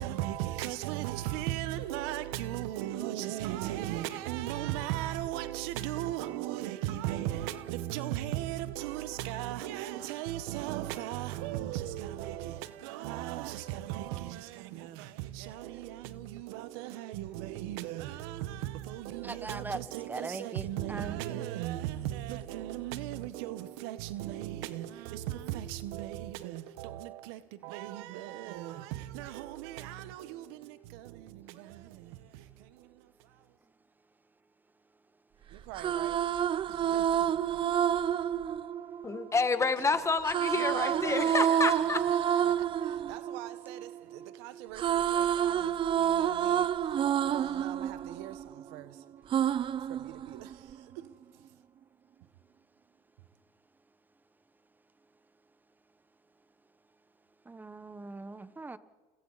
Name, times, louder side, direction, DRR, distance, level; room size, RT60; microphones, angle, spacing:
voice 1, 0.0-33.5 35.5-36.3 36.7-37.4 39.9-40.0 40.5-49.0 49.6-51.1, right 13 dB, 85° right, 1.2 m, -38 dB
voice 2, 19.2-19.8 20.1-21.1 57.5-58.8, right 3 dB, 15° right, 1.2 m, -40 dB
sound 1, 35.6-39.6 40.2-44.3 44.6-48.8 49.3-50.7, right 9 dB, 40° right, 0.7 m, -29 dB
voice 3, 39.0-42.0, left 4 dB, 20° left, 1.7 m, -29 dB
29.5 x 23.0 x 4.1 m
supercardioid pair, 100°, 13 cm